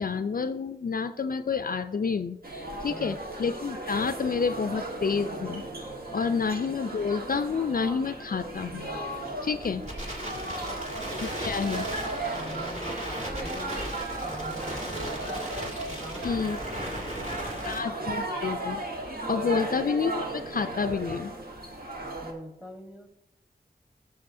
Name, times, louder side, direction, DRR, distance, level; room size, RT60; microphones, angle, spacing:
voice 1, 0.0-5.6 6.1-8.9 9.4-9.8 11.2-11.9 16.2-16.6 17.6-18.8 19.3-21.3, left 5 dB, 55° left, 10 dB, 0.4 m, -29 dB
sound 1, 2.4-22.3, right 2 dB, 60° right, 1.3 m, -36 dB
voice 2, 2.9-3.2 10.3-10.9 12.3-13.9 14.2-15.5 15.9-16.5 16.8-18.2 19.4-19.6 22.2-23.1, equal, 5° right, 4 dB, 1.4 m, -45 dB
Crackle, 8.5-17.8, equal, 40° right, 2.3 m, -37 dB
13.0 x 6.8 x 2.6 m, 0.88 s
cardioid pair, 40°, 17 cm